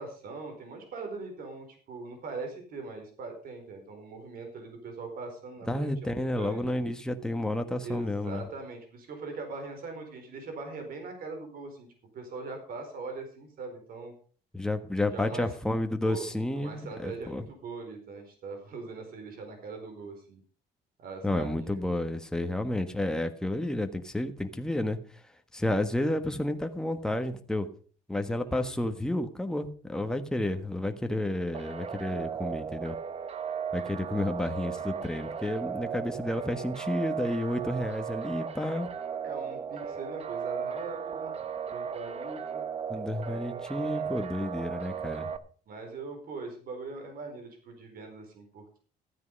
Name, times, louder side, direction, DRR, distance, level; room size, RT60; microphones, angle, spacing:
voice 1, 0.0-6.7 7.8-11.9 12.1-14.1 15.1-15.5 16.0-16.3 16.5-20.4 21.0-21.8 28.4-28.9 39.2-41.4 41.6-42.6 43.8-44.0 45.7-48.8, right 3 dB, 60° right, 5 dB, 4.5 m, -41 dB
voice 2, 5.7-8.4 14.5-17.4 21.2-25.0 25.5-27.7 28.1-33.0 33.7-38.9 42.9-45.3, left 1 dB, 5° left, 6 dB, 1.5 m, -31 dB
sound 1, 31.5-45.4, right 7 dB, 35° right, 1.0 m, -36 dB
14.0 x 9.4 x 5.4 m, 0.41 s
cardioid pair, 110°, 17 cm